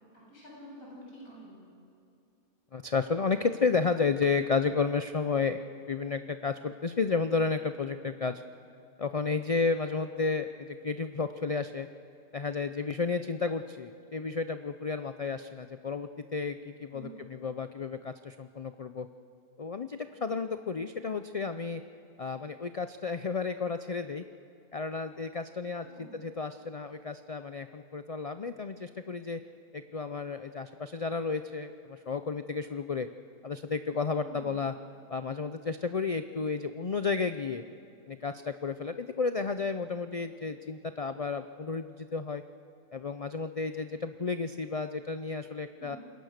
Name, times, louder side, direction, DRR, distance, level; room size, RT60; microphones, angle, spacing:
voice 1, 0.3-1.6 16.9-17.2 25.8-26.2 34.2-34.5 45.8-46.0, right 1 dB, 80° left, -5 dB, 8.1 m, -48 dB
voice 2, 2.7-8.4 9.0-11.9 12.3-19.1 19.6-21.8 22.2-24.2 24.7-29.4 29.7-33.1 33.4-34.7 35.1-37.6 38.1-42.4 42.9-46.0, left 4 dB, 55° left, 10 dB, 0.3 m, -32 dB
27.0 x 22.0 x 6.6 m, 2.6 s
omnidirectional pair, 1.5 m